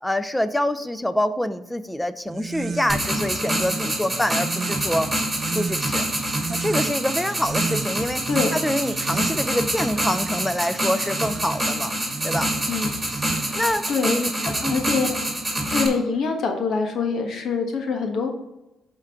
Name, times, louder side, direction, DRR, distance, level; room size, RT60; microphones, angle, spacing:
voice 1, 0.0-5.1 5.5-6.1 6.5-8.2 8.5-12.5 13.5-14.8, left 1 dB, 5° left, 12 dB, 0.6 m, -26 dB
sound 1, 2.3-13.8, right 5 dB, 45° right, 0.5 m, -34 dB
sound 2, 2.9-15.9, right 1 dB, 10° right, 2.8 m, -26 dB
voice 2, 12.7-13.0 13.5-13.6 13.9-14.2 14.4-15.1 15.7-18.3, left 4 dB, 65° left, 3 dB, 1.3 m, -25 dB
11.0 x 4.5 x 3.7 m, 0.93 s
cardioid pair, 90°, 0 cm